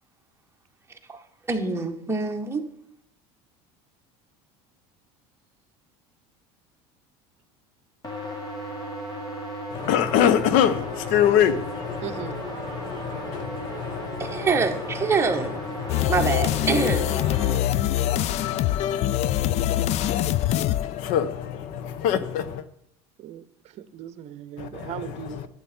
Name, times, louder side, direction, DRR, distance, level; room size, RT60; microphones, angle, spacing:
voice 1, 1.5-2.6 14.2-15.7 16.1-17.1, right 4 dB, 15° right, 3 dB, 1.5 m, -25 dB
sound 1, 8.0-17.6, left 1 dB, 30° left, 2.9 m, -35 dB
voice 2, 9.7-14.5 15.0-16.3 16.7-22.6 24.6-25.5, left 9 dB, 65° left, 13 dB, 1.0 m, -27 dB
voice 3, 12.0-12.3 23.2-25.5, right 10 dB, 50° right, 15 dB, 0.8 m, -38 dB
sound 2, 15.9-21.6, left 13 dB, 50° left, 0.4 m, -24 dB
11.5 x 8.1 x 4.4 m, 0.76 s
supercardioid pair, 100°, 14 cm